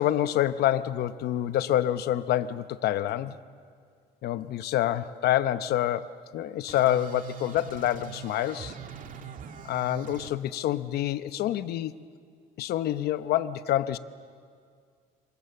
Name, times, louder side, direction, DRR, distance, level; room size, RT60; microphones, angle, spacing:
voice 1, 0.0-3.4 4.2-8.7 9.6-11.9 12.6-14.0, left 12 dB, 70° left, 13 dB, 0.9 m, -27 dB
sound 1, 6.7-10.3, right 8 dB, 50° right, 2.1 m, -42 dB
27.0 x 24.5 x 6.9 m, 2.1 s
cardioid pair, 110°, 17 cm